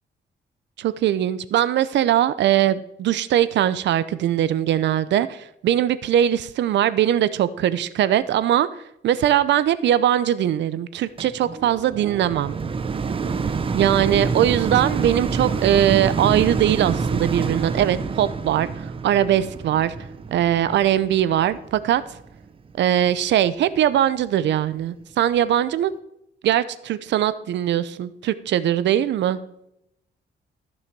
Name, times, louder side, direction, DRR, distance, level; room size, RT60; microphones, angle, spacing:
voice 1, 0.8-8.7 9.0-12.5 13.7-19.9 20.3-22.0 22.8-25.9 26.4-29.4, right 11 dB, 80° right, 15 dB, 0.7 m, -21 dB
sound 1, 11.2-22.4 23.0-23.1, right 5 dB, 30° right, 0.7 m, -27 dB
14.0 x 6.4 x 4.7 m, 0.79 s
cardioid pair, 135°, 18 cm